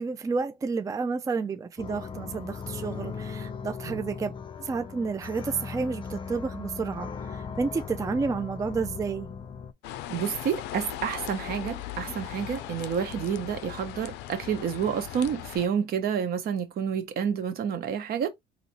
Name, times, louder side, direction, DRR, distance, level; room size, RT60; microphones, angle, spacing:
voice 1, 0.0-4.3 4.6-9.3, right 4 dB, 20° right, 0.4 m, -30 dB
sound 1, 1.8-9.7, left 6 dB, 30° left, 0.5 m, -38 dB
sound 2, 9.8-15.7, left 13 dB, 90° left, 0.5 m, -38 dB
voice 2, 10.1-18.3, right 8 dB, 65° right, 1.1 m, -29 dB
4.1 x 3.0 x 2.8 m
cardioid pair, 110°, 17 cm